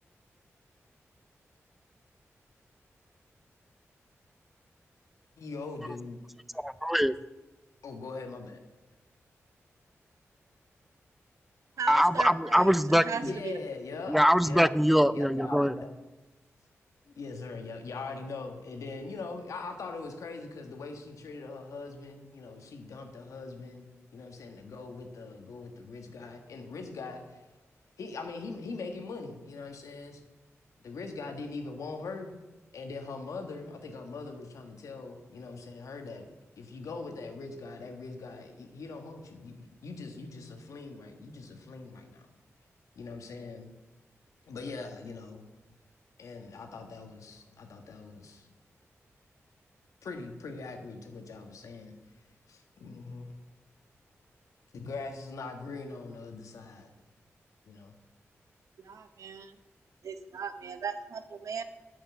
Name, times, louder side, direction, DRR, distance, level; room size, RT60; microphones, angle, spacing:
voice 1, 5.4-6.2 7.8-8.6 13.2-14.7 15.1-15.9 17.1-27.4 28.0-30.2 30.8-32.4 32.7-36.3 36.6-42.3 42.9-43.7 44.4-45.4 46.2-48.5 50.0-51.9 52.5-53.3 54.7-56.9 57.6-58.0, left 3 dB, 90° left, 5 dB, 1.5 m, -41 dB
voice 2, 6.5-7.1 11.9-13.3 14.1-15.8, equal, 5° right, 16 dB, 0.4 m, -23 dB
voice 3, 11.8-13.5 58.8-59.5 60.0-61.6, right 6 dB, 80° right, 10 dB, 0.8 m, -37 dB
9.3 x 7.2 x 7.0 m, 1.1 s
cardioid pair, 60°, 5 cm